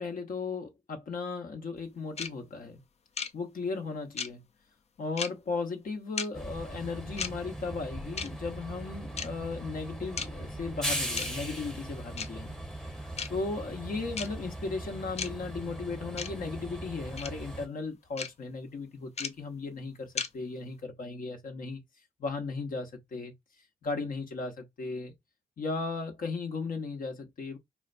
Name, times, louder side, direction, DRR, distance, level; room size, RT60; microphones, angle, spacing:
voice 1, 0.0-2.8 3.3-4.4 5.0-21.8 22.2-23.3 23.8-25.1 25.6-27.6, left 4 dB, 65° left, 0.8 m, -36 dB
sound 1, 2.2-2.3 3.2-3.3 4.2-4.3 5.2-5.3 6.2-6.3 7.2-7.3 8.2-8.3 9.2-9.3 10.2-10.3 11.2-11.3 12.2-12.3 13.2-13.3 14.2-14.3 15.2-15.3 16.2-16.3 17.2-17.3 18.2-18.3 19.2-19.3 20.2-20.3, left 6 dB, 45° left, 0.4 m, -33 dB
Train, 6.3-17.7, right 1 dB, 5° left, 0.7 m, -39 dB
3.8 x 2.1 x 2.5 m
cardioid pair, 60°, 16 cm